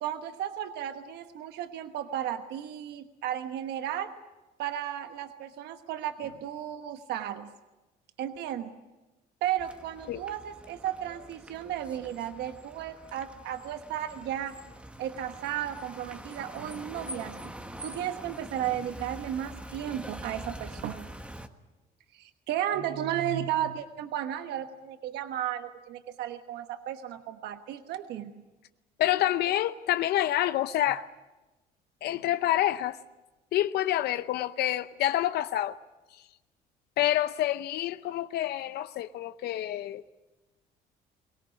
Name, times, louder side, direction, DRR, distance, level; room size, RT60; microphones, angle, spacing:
voice 1, 0.0-4.1 4.6-7.5 8.2-8.7 9.4-14.5 15.0-17.4 17.8-21.1 22.1-28.3, right 11 dB, 80° right, 1.2 m, -34 dB
sound 1, 9.6-21.5, right 1 dB, 5° right, 1.4 m, -45 dB
voice 2, 29.0-31.0 32.0-33.0 33.5-35.8 37.0-40.0, left 13 dB, 70° left, 0.7 m, -27 dB
23.0 x 18.0 x 9.6 m
cardioid pair, 110°, 17 cm